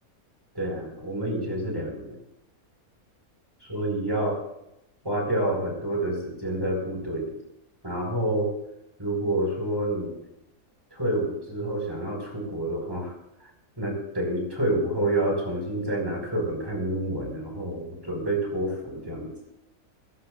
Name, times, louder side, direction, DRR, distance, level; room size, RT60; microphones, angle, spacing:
voice 1, 0.5-2.2 3.7-4.4 5.0-7.3 7.8-8.5 9.0-10.2 10.9-13.1 13.8-19.3, right 1 dB, 15° right, 0 dB, 5.2 m, -28 dB
20.5 x 15.0 x 2.5 m, 0.84 s
omnidirectional pair, 1.5 m